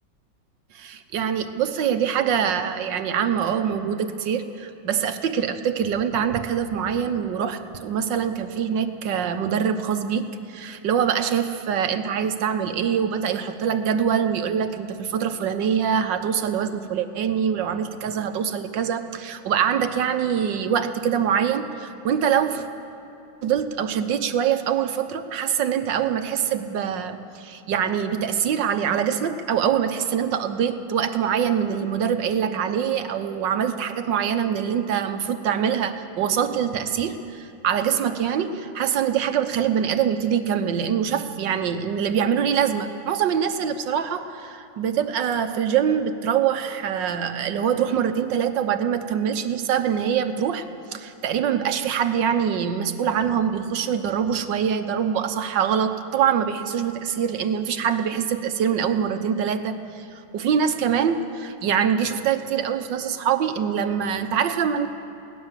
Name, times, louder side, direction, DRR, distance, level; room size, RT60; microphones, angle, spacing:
voice 1, 0.7-22.7 23.4-50.7 50.9-64.9, right 8 dB, 70° right, 9 dB, 1.6 m, -24 dB
20.5 x 17.5 x 7.4 m, 2.7 s
omnidirectional pair, 2.1 m